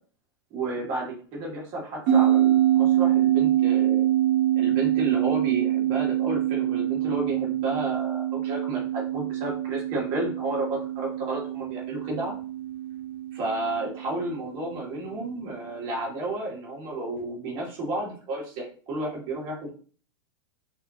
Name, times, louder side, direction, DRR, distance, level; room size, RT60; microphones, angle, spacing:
voice 1, 0.5-4.1 4.5-12.3 13.3-19.7, right 2 dB, 40° right, -3 dB, 2.3 m, -32 dB
sound 1, 2.1-14.8, right 12 dB, 60° right, 1.3 m, -25 dB
5.7 x 2.9 x 2.8 m, 0.40 s
supercardioid pair, 135°, 14 cm